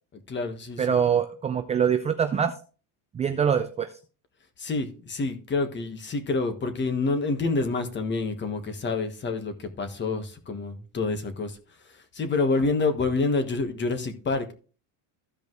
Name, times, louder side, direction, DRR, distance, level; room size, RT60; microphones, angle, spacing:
voice 1, 0.3-0.9 4.6-11.6 11.9-14.5, left 3 dB, 25° left, 1.3 m, -28 dB
voice 2, 0.8-2.5 3.1-3.9, right 7 dB, 15° right, 0.3 m, -24 dB
15.0 x 5.1 x 3.1 m
cardioid pair, 145°, 44 cm